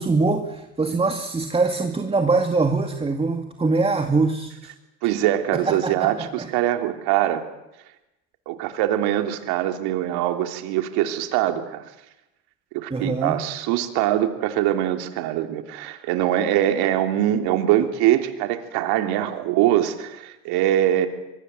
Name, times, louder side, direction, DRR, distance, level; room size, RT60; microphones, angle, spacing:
voice 1, 0.0-4.5 5.5-6.5 12.9-13.4, right 3 dB, 15° right, 5 dB, 2.3 m, -23 dB
voice 2, 5.0-7.4 8.5-11.8 12.7-21.1, right 12 dB, 70° right, 6 dB, 3.2 m, -23 dB
24.0 x 23.5 x 7.8 m, 0.92 s
supercardioid pair, 95°, 39 cm